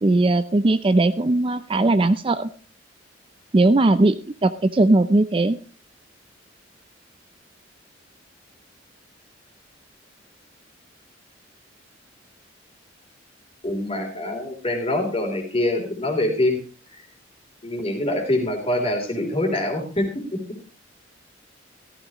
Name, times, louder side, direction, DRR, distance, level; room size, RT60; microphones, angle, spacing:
voice 1, 0.0-2.5 3.5-5.6, right 2 dB, 30° right, 12 dB, 0.5 m, -19 dB
voice 2, 13.6-16.6 17.6-20.1, left 1 dB, 30° left, 3 dB, 3.4 m, -24 dB
14.5 x 13.5 x 3.0 m, 0.35 s
head